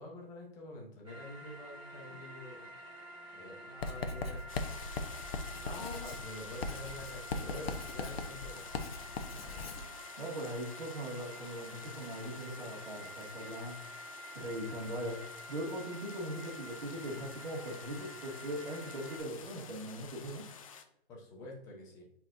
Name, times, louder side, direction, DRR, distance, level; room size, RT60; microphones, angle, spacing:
voice 1, 0.0-2.7 3.3-4.4 5.6-8.7 21.1-22.1, left 1 dB, 10° left, -1 dB, 0.9 m, -47 dB
sound 1, 1.0-19.2, right 1 dB, 15° right, 2.5 m, -49 dB
Writing, 3.8-9.9, left 3 dB, 75° left, 1.0 m, -39 dB
sound 2, 4.5-20.8, left 7 dB, 35° left, 0.6 m, -51 dB
voice 2, 9.3-9.9 10.2-13.8 14.3-20.5, equal, 55° right, -4 dB, 2.1 m, -40 dB
9.0 x 4.4 x 2.6 m, 0.75 s
hypercardioid pair, 165°, 30 cm